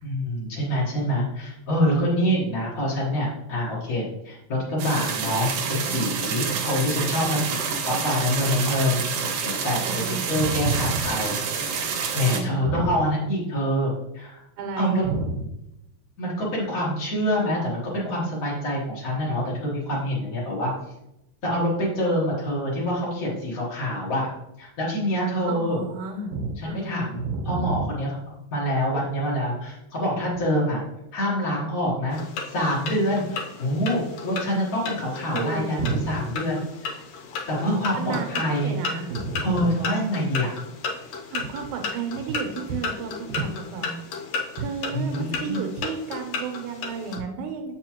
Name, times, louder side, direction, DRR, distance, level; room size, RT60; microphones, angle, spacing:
voice 1, 0.0-7.6 7.8-9.0 9.4-14.4 14.8-15.1 16.2-20.7 21.4-24.3 24.6-25.8 26.6-30.8 31.1-32.2 32.5-36.9 37.5-38.7 39.4-40.5 44.9-45.6, equal, 40° left, -6 dB, 1.3 m, -26 dB
sound 1, 4.8-12.4, right 6 dB, 70° right, 1.6 m, -28 dB
voice 2, 9.8-11.2 12.2-12.9 14.6-15.4 25.5-27.9 35.3-36.3 38.0-39.7 41.3-44.0 44.5-47.7, right 4 dB, 90° right, 4 dB, 2.4 m, -31 dB
sound 2, 32.1-47.2, left 4 dB, 70° left, 1.9 m, -34 dB
7.7 x 4.8 x 2.9 m, 0.85 s
omnidirectional pair, 3.4 m